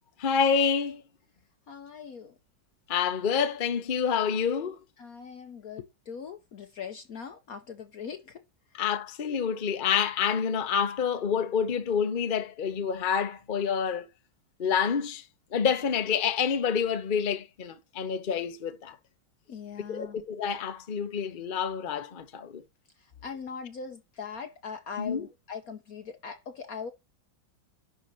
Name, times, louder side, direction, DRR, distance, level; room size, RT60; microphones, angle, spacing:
voice 1, 0.2-1.0 2.9-4.7 8.7-14.1 14.6-15.2 15.5-19.0 19.9-22.6 25.0-25.3, left 7 dB, 40° left, 0.8 m, -28 dB
voice 2, 1.7-2.3 5.0-8.4 19.5-20.2 23.2-26.9, left 6 dB, 60° left, 1.0 m, -40 dB
11.0 x 3.9 x 5.4 m
omnidirectional pair, 2.2 m